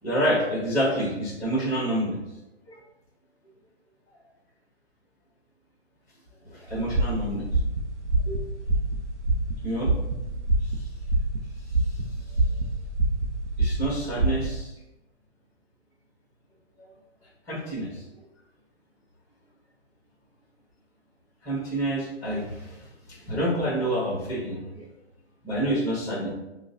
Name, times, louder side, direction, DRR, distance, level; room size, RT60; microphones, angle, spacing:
voice 1, 0.0-2.2 2.7-2.8 6.4-7.5 8.3-8.5 9.6-10.3 10.6-10.7 11.8-12.0 13.6-14.7 16.8-16.9 17.5-18.0 21.4-24.9 25.4-26.3, right 1 dB, 10° left, -6 dB, 1.2 m, -28 dB
sound 1, 6.7-14.6, right 2 dB, 90° right, 0.6 m, -26 dB
6.4 x 2.2 x 2.6 m, 0.98 s
figure-of-eight pair, 125°, 34 cm